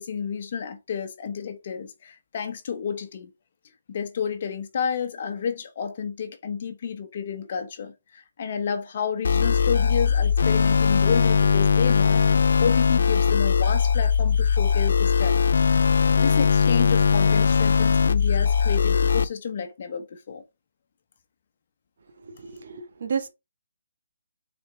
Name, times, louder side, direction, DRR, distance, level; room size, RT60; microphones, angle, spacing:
voice 1, 0.0-3.3 3.9-12.2 12.6-15.5 16.2-20.4, left 7 dB, 40° left, 1.1 m, -30 dB
sound 1, 9.2-19.2, left 6 dB, 65° left, 0.5 m, -20 dB
voice 2, 22.2-23.3, right 6 dB, 55° right, 1.3 m, -31 dB
6.3 x 4.4 x 3.5 m
hypercardioid pair, 165°, 0 cm